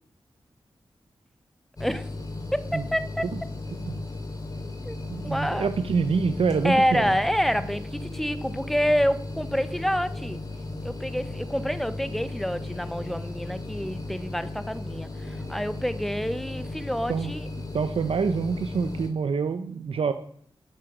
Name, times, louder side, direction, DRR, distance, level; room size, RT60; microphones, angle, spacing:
sound 1, 1.8-19.1, left 2 dB, 40° left, 3.0 m, -36 dB
voice 1, 2.5-3.3 4.9-5.0 5.2-5.7 6.6-10.4 10.8-17.5, equal, ahead, 13 dB, 0.8 m, -27 dB
voice 2, 5.1-7.1 17.1-17.3 17.7-20.1, right 5 dB, 85° right, 9 dB, 0.8 m, -26 dB
13.0 x 11.0 x 6.1 m, 0.62 s
wide cardioid pair, 135°, 9 cm